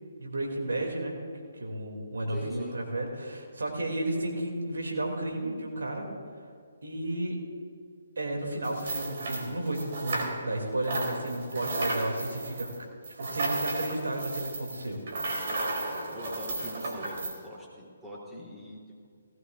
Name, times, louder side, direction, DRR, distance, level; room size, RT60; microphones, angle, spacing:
voice 1, 0.2-1.2 1.5-6.1 6.8-7.4 8.2-15.0, right 1 dB, 75° right, 1 dB, 2.8 m, -33 dB
voice 2, 2.3-2.8 16.1-19.1, equal, 5° right, -6 dB, 3.5 m, -43 dB
sound 1, 8.6-10.6 10.8-17.4, right 2 dB, 55° right, 3.6 m, -34 dB
19.0 x 17.0 x 2.6 m, 2.2 s
figure-of-eight pair, 140°, 0 cm